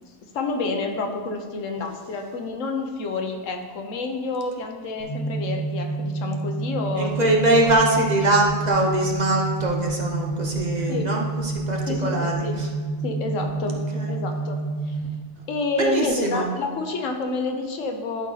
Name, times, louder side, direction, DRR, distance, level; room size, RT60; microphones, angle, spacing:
voice 1, 0.3-7.7 10.9-11.1 11.8-12.6 13.0-13.8 14.1-15.0 15.5-18.3, left 3 dB, 85° left, 4 dB, 1.2 m, -29 dB
sound 1, 5.0-15.0, right 3 dB, 20° left, 2.6 m, -29 dB
voice 2, 7.0-12.7 13.9-14.1 15.8-16.5, right 2 dB, 40° right, -1 dB, 0.9 m, -22 dB
11.0 x 4.2 x 4.0 m, 1.5 s
omnidirectional pair, 1.3 m